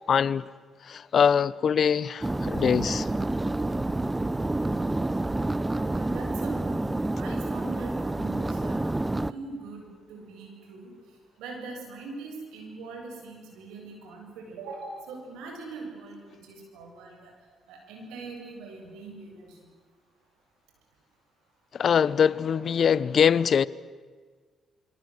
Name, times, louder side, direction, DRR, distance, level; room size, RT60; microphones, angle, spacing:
voice 1, 0.1-0.5 0.8-3.1 21.7-23.7, left 7 dB, 60° left, 0.9 m, -23 dB
sound 1, 2.2-9.3, right 2 dB, 15° right, 0.9 m, -28 dB
voice 2, 5.7-6.9 7.2-8.8 9.3-10.9 11.4-17.3 17.7-19.6, right 3 dB, 85° right, 7.9 m, -42 dB
28.0 x 25.0 x 8.0 m
supercardioid pair, 65°, 0 cm